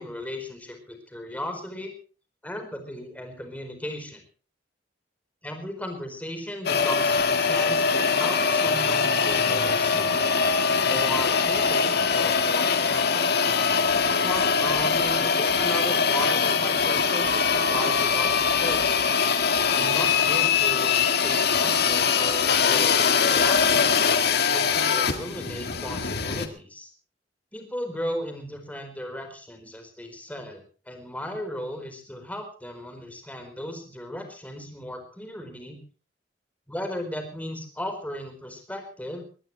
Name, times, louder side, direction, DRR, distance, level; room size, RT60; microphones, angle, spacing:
voice 1, 0.0-1.9 2.4-4.2 5.4-10.3 10.8-13.3 14.2-19.0 19.7-24.0 24.5-26.9 27.5-35.8 36.7-39.2, left 1 dB, 10° left, 6 dB, 4.5 m, -36 dB
sound 1, 6.6-26.5, left 5 dB, 60° left, 1.9 m, -22 dB
21.0 x 19.0 x 3.3 m, 0.37 s
head